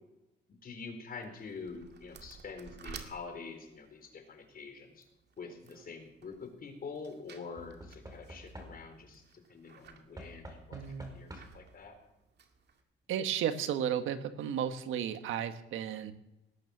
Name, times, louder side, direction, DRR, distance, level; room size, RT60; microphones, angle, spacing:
voice 1, 0.6-5.0 5.4-9.2 9.5-10.6 11.1-12.0, left 4 dB, 45° left, 6 dB, 4.3 m, -45 dB
sound 1, 1.1-12.8, right 6 dB, 55° right, 2.3 m, -55 dB
Knock / Wood, 5.4-5.9 7.6-9.1 10.2-11.7 12.8-12.9 13.1-13.2, right 1 dB, 20° right, 5.0 m, -49 dB
voice 2, 10.7-11.2 13.1-16.1, right 9 dB, 85° right, 9 dB, 1.5 m, -34 dB
19.5 x 9.3 x 7.3 m, 0.95 s
cardioid pair, 90°, 20 cm